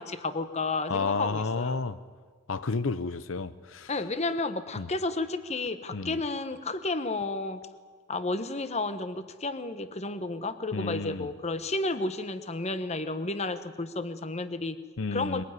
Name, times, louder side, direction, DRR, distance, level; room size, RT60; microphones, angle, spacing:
voice 1, 0.0-1.8 3.9-7.6 8.1-14.8 15.1-15.4, left 2 dB, 35° left, 1.2 m, -32 dB
voice 2, 0.9-2.0 2.5-3.9 4.8-4.9 5.9-6.2 10.7-11.3 15.0-15.4, left 4 dB, 80° left, 0.7 m, -31 dB
22.5 x 18.5 x 9.6 m
head